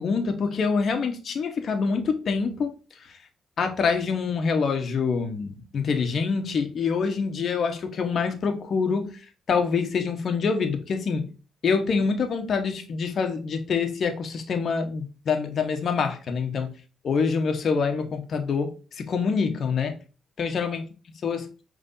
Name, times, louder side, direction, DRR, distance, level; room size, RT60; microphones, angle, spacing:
voice 1, 0.0-2.7 3.6-9.1 9.5-11.3 11.6-16.7 17.0-20.0 20.4-20.9 21.2-21.5, left 5 dB, 55° left, 1.0 m, -26 dB
5.2 x 3.3 x 2.6 m
cardioid pair, 90°, 0 cm